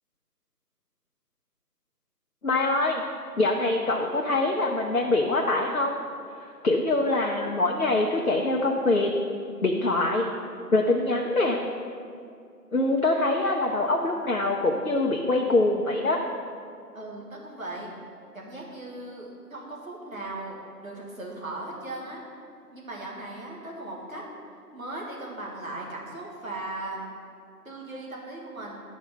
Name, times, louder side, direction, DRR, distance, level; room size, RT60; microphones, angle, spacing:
voice 1, 2.4-3.0 3.4-6.0 6.6-9.1 9.6-10.3 10.7-11.6 12.7-16.2, left 2 dB, 60° left, 0 dB, 0.7 m, -24 dB
voice 2, 16.9-17.9 18.3-22.2 22.7-24.2 24.7-27.0 27.7-28.8, right 2 dB, 55° right, -3 dB, 1.9 m, -38 dB
10.5 x 5.0 x 5.5 m, 2.4 s
figure-of-eight pair, 170°, 49 cm